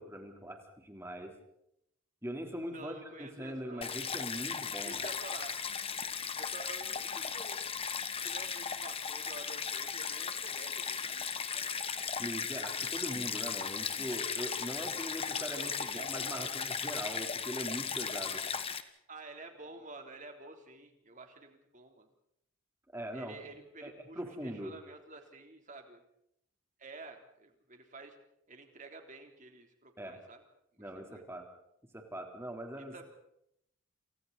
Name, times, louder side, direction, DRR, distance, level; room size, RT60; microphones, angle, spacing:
voice 1, 0.0-1.3 2.2-2.9 3.2-5.0 12.2-18.4 22.9-23.4 23.8-24.7 30.0-30.2 30.8-31.4 31.9-33.0, equal, 10° right, 3 dB, 3.7 m, -41 dB
voice 2, 2.6-3.9 4.8-5.6 6.4-7.6 8.2-11.7 15.5-16.5 16.8-17.0 19.1-22.1 23.1-26.0 26.8-28.2 28.5-30.4 30.7-31.2 32.9-33.0, right 3 dB, 35° right, 4 dB, 3.4 m, -50 dB
Stream, 3.8-18.8, left 6 dB, 25° left, 1.4 m, -37 dB
sound 1, 13.5-14.3 14.7-15.6 16.0-16.9 17.3-18.6, right 1 dB, 50° left, 5.7 m, -63 dB
29.0 x 28.5 x 4.2 m, 0.77 s
head